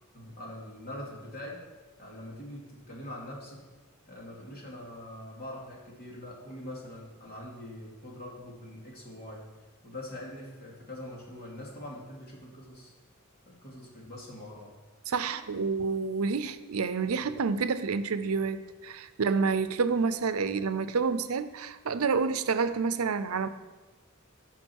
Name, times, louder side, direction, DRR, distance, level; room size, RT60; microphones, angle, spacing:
voice 1, 0.1-1.7 2.0-3.6 4.1-9.4 9.8-12.9 13.4-14.7 15.3-15.5, left 1 dB, 45° left, -3 dB, 2.8 m, -43 dB
voice 2, 15.1-23.5, right 5 dB, 85° right, 12 dB, 0.6 m, -28 dB
15.0 x 6.0 x 4.7 m, 1.2 s
head